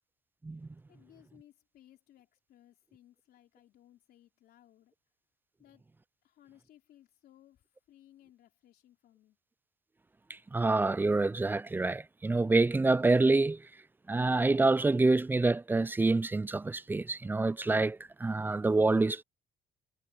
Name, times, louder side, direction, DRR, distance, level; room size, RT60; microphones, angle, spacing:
voice 1, 0.9-4.9 5.6-5.9 6.2-9.4, left 12 dB, 65° left, 3.4 m, -61 dB
voice 2, 10.3-13.6 14.1-19.2, right 3 dB, 10° right, 0.3 m, -27 dB
cardioid pair, 110°, 17 cm